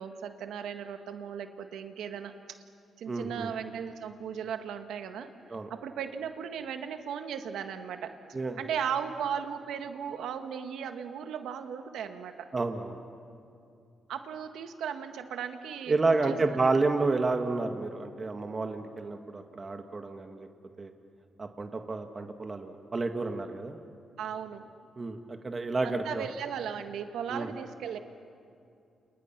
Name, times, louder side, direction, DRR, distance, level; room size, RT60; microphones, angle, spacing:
voice 1, 0.0-2.3 3.0-8.2 8.6-12.5 14.1-16.6 24.2-24.7 25.8-28.0, right 8 dB, 90° right, 7 dB, 1.7 m, -37 dB
voice 2, 3.1-3.5 5.5-5.7 8.3-8.6 12.5-13.0 15.9-20.5 20.8-20.9 21.4-23.8 25.0-26.3 27.3-27.5, right 3 dB, 35° right, 5 dB, 1.9 m, -30 dB
29.5 x 29.0 x 6.0 m, 2.5 s
cardioid pair, 85°, 0 cm